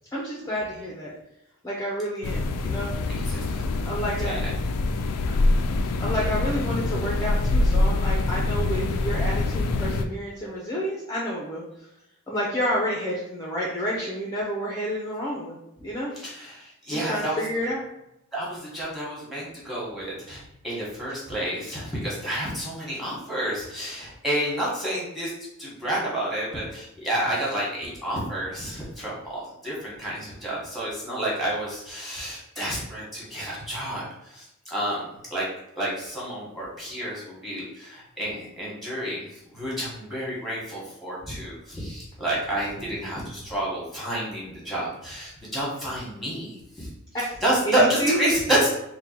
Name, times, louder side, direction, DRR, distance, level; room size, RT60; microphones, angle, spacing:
voice 1, 0.1-1.1 1.6-2.9 3.8-4.4 5.2-5.3 5.8-11.6 12.3-16.1 16.9-17.8 42.7-43.1 47.1-47.3 47.6-48.2, equal, 15° left, -4 dB, 0.6 m, -30 dB
sound 1, 2.2-10.0, left 2 dB, 90° left, 0.4 m, -25 dB
voice 2, 3.1-3.6 3.9-4.5 16.1-17.5 18.3-35.0 35.3-35.5 35.7-48.7, right 1 dB, ahead, -6 dB, 1.3 m, -29 dB
3.7 x 2.2 x 4.3 m, 0.85 s
head